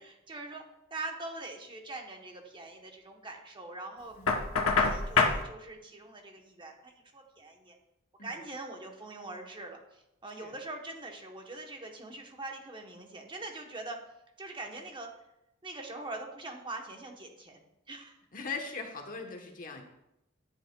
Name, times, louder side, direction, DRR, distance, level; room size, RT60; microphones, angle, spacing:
voice 1, 0.3-0.6 0.9-4.2 4.6-7.8 8.2-9.8 10.2-14.0 14.4-15.1 15.6-18.1, right 2 dB, 25° right, 2 dB, 0.9 m, -43 dB
Knock, 4.3-5.4, left 4 dB, 80° left, 0.9 m, -25 dB
voice 2, 18.3-19.8, left 4 dB, 40° left, 3 dB, 1.0 m, -39 dB
10.0 x 7.9 x 2.2 m, 0.86 s
head